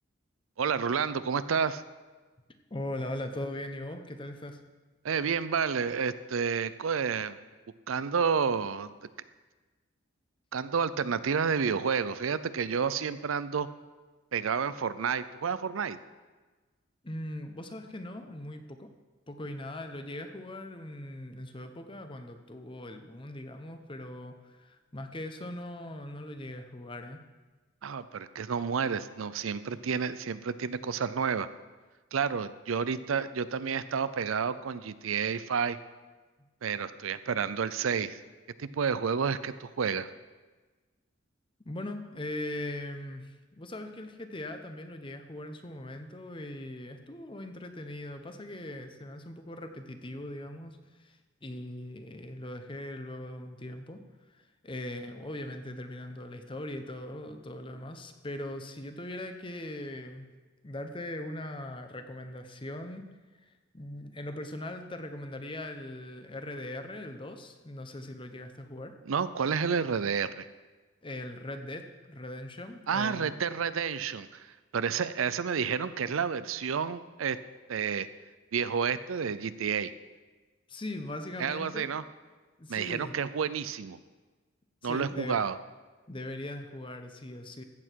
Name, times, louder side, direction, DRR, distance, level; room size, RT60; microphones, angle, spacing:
voice 1, 0.6-1.8 5.0-7.4 7.9-8.9 10.5-13.7 14.3-16.0 27.8-31.5 32.1-35.8 36.6-38.2 38.6-40.1 69.1-70.5 72.9-74.5 74.7-77.4 77.7-78.1 78.5-79.9 81.4-82.0 82.7-84.0 84.8-85.6, right 6 dB, 85° right, 14 dB, 0.5 m, -30 dB
voice 2, 2.7-4.6 17.0-18.9 19.3-27.2 36.4-36.5 41.6-54.0 54.3-60.3 60.6-63.0 63.4-69.0 71.0-73.3 80.7-81.9 82.6-83.2 84.8-85.4 86.1-87.6, left 1 dB, 25° left, 7 dB, 0.8 m, -40 dB
14.5 x 7.9 x 4.6 m, 1.3 s
head